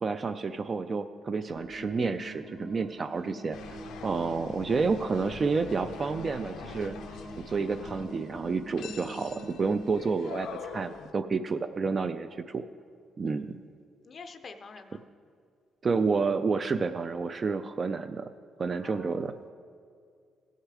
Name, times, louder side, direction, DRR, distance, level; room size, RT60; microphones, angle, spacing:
voice 1, 0.0-3.6 4.0-6.9 7.5-12.6 13.2-13.6 15.8-18.3 18.6-19.3, right 4 dB, 30° right, 10 dB, 0.3 m, -30 dB
sound 1, 1.5-10.0, equal, 50° right, 2.7 m, -44 dB
sound 2, 3.5-11.1, left 6 dB, 90° left, 0.6 m, -45 dB
voice 2, 13.2-13.7 14.0-15.0 18.8-19.5, left 4 dB, 40° left, 8 dB, 0.5 m, -48 dB
17.0 x 6.5 x 4.8 m, 2.2 s
cardioid pair, 150°, 0 cm